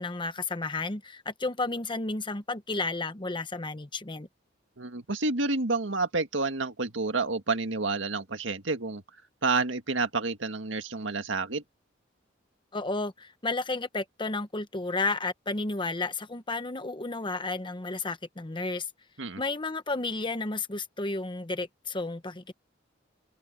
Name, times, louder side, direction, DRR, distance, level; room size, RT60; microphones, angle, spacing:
voice 1, 0.0-4.3 12.7-18.9 19.4-22.5, left 3 dB, 25° left, 1.1 m, -32 dB
voice 2, 4.8-9.0 9.4-11.6 19.2-19.4, right 3 dB, 85° right, 1.9 m, -29 dB
head